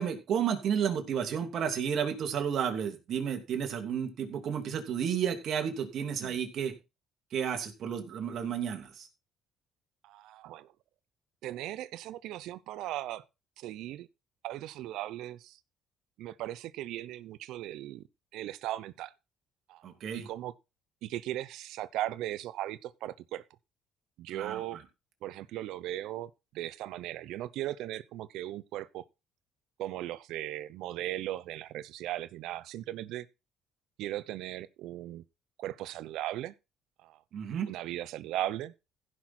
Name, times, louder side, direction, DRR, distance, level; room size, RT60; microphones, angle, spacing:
voice 1, 0.0-6.7 7.3-9.1 19.8-20.3 24.3-24.8 37.3-37.7, right 8 dB, 60° right, 2.7 m, -32 dB
voice 2, 10.0-10.7 11.4-13.2 13.6-14.1 14.4-15.6 16.2-18.0 18.3-19.1 19.7-19.8 20.1-20.5 21.0-23.4 24.2-24.8 25.2-26.3 26.5-29.0 29.8-33.3 34.0-35.2 35.6-36.5 37.0-37.2 37.7-38.7, right 14 dB, 80° right, 0.6 m, -37 dB
15.5 x 6.0 x 4.4 m
cardioid pair, 90°, 0 cm